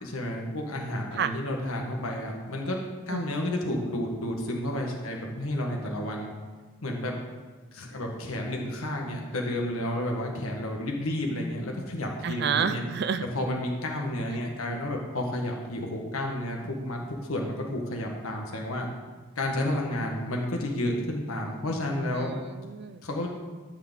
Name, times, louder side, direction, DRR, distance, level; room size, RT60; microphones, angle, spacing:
voice 1, 0.0-2.8 3.1-6.3 6.8-7.1 7.7-12.8 13.2-18.9 19.3-22.3 23.0-23.3, left 1 dB, 80° left, 0 dB, 1.6 m, -31 dB
voice 2, 12.2-13.2 14.3-14.4 22.2-23.0, right 7 dB, 50° right, 11 dB, 0.4 m, -29 dB
13.0 x 4.9 x 7.5 m, 1.4 s
head